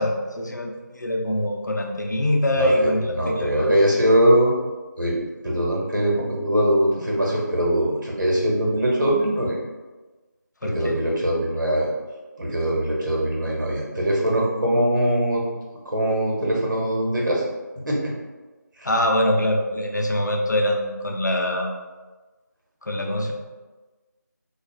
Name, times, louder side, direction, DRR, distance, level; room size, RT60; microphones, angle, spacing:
voice 1, 0.0-3.7 10.6-11.0 18.8-21.7 22.8-23.3, left 1 dB, 65° left, 1 dB, 0.5 m, -23 dB
voice 2, 2.6-2.9 3.2-4.5 5.0-5.2 5.4-9.6 10.6-11.9 12.4-15.4 15.8-17.4 17.9-18.1 18.8-18.9, right 1 dB, 80° right, -3 dB, 1.0 m, -21 dB
2.3 x 2.1 x 3.5 m, 1.3 s
figure-of-eight pair, 175°, 10 cm